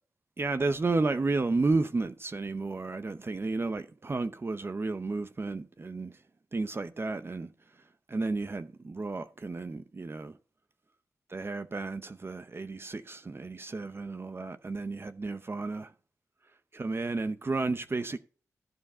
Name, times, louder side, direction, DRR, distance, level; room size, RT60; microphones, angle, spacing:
voice 1, 0.4-6.1 6.5-7.5 8.1-10.4 11.3-15.9 16.7-18.2, right 3 dB, 40° right, 0.7 m, -32 dB
14.0 x 4.8 x 5.6 m
cardioid pair, 55°, 6 cm